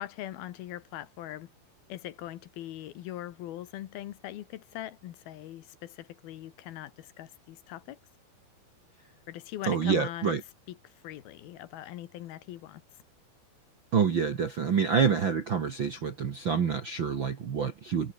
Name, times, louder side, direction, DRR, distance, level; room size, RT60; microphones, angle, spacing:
voice 1, 0.0-1.5 1.9-8.0 9.3-10.4 10.7-10.8 11.0-12.8, left 13 dB, 75° left, 3.0 m, -41 dB
voice 2, 9.7-10.4 13.9-18.1, right 6 dB, 55° right, 1.3 m, -27 dB
open air
omnidirectional pair, 4.5 m